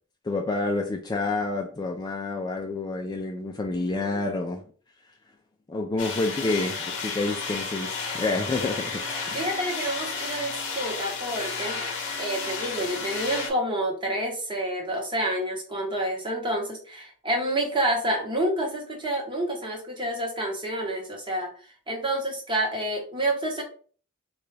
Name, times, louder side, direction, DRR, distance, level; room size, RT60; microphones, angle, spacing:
voice 1, 0.2-4.6 5.7-8.9 9.3-9.4, left 2 dB, 20° left, 2 dB, 0.3 m, -28 dB
sound 1, 6.0-13.5, left 4 dB, 55° left, 0.8 m, -32 dB
voice 2, 9.3-11.8 12.2-23.6, right 1 dB, 20° right, 1 dB, 1.0 m, -29 dB
3.8 x 2.3 x 3.2 m, 0.43 s
head